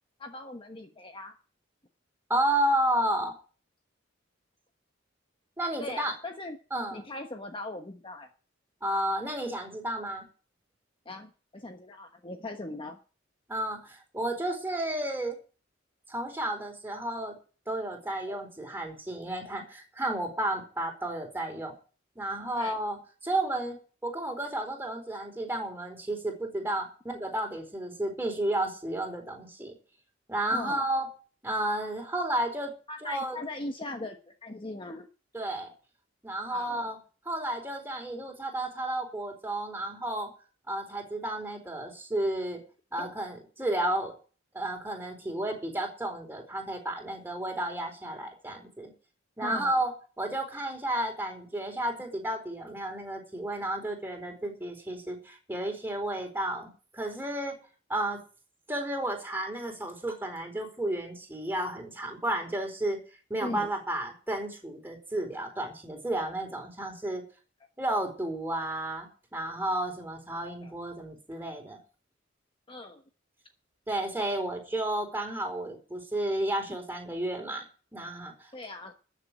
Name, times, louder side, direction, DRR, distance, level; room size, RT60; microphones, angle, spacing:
voice 1, 0.2-1.3 5.8-6.6 6.9-8.3 11.0-13.0 18.3-18.4 22.5-22.8 30.5-30.8 32.9-35.1 36.5-36.9 43.0-43.1 49.4-49.8 63.4-63.7 70.6-70.7 72.7-73.0 78.5-78.9, left 2 dB, 25° left, 5 dB, 1.2 m, -39 dB
voice 2, 2.3-3.3 5.6-6.1 6.7-7.0 8.8-10.3 13.5-15.4 16.1-17.3 17.7-21.7 22.2-23.0 23.2-23.8 24.0-29.7 30.3-31.1 31.4-32.7 33.0-33.4 35.3-35.7 36.2-37.0 37.2-40.3 40.7-42.6 42.9-44.1 44.5-48.9 49.4-49.9 50.2-57.6 57.9-58.2 58.7-63.0 63.3-67.2 67.8-71.8 73.9-77.6 77.9-78.5, right 1 dB, 10° right, 3 dB, 4.4 m, -32 dB
13.5 x 7.4 x 9.0 m, 0.36 s
head